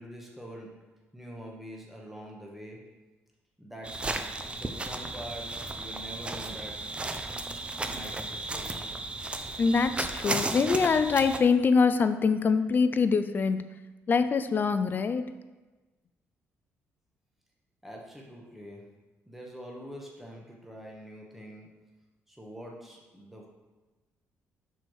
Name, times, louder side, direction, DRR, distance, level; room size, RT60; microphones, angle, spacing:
voice 1, 0.0-2.9 3.6-4.1 4.5-6.9 7.8-9.0 17.8-18.9 19.3-21.8 22.3-23.5, equal, 5° right, -2 dB, 1.1 m, -45 dB
sound 1, 3.8-11.4, right 2 dB, 20° right, 0.5 m, -34 dB
voice 2, 9.6-13.8 14.1-15.3, left 5 dB, 40° left, 11 dB, 0.3 m, -24 dB
6.1 x 4.5 x 4.7 m, 1.2 s
cardioid pair, 110°, 5 cm